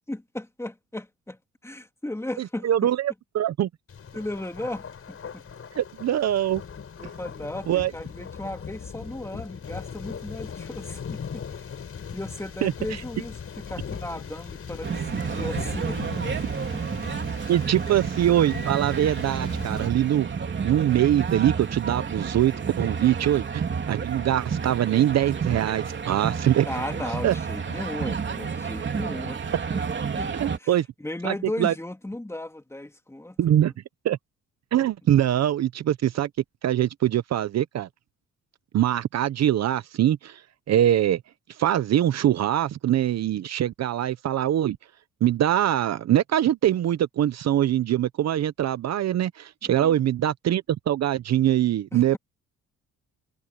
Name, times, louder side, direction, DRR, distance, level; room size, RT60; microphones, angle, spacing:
voice 1, 0.1-1.4 1.6-2.7 4.1-5.4 7.0-11.7 12.1-16.8 26.7-29.4 29.7-29.8 30.2-30.3 30.6-33.4 49.6-50.0 51.9-52.2, left 1 dB, 10° left, 3.0 m, -36 dB
voice 2, 2.4-3.7 5.8-6.6 7.7-7.9 12.6-12.7 17.5-20.3 20.6-26.7 27.2-27.3 30.4-30.9 31.2-31.7 33.4-33.7 34.0-34.2 34.7-36.3 36.6-37.9 38.7-40.4 40.7-41.2 41.6-44.8 45.2-52.2, right 11 dB, 60° right, 0.8 m, -23 dB
Thunder, 3.9-19.9, left 7 dB, 45° left, 5.6 m, -39 dB
sound 1, 14.8-30.6, right 6 dB, 40° right, 3.2 m, -30 dB
cardioid pair, 90°, 30 cm